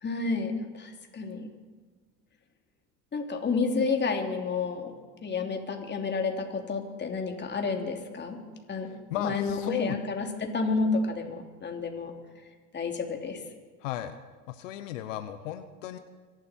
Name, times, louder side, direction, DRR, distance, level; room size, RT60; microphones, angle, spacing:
voice 1, 0.0-1.5 3.1-4.9 5.2-8.4 8.7-8.9 9.2-12.1 12.7-13.4, left 4 dB, 30° left, 3 dB, 3.1 m, -30 dB
voice 2, 9.1-10.0 13.8-14.1 14.5-16.0, left 12 dB, 90° left, 9 dB, 1.0 m, -35 dB
25.0 x 12.0 x 4.5 m, 1.5 s
supercardioid pair, 90°, 37 cm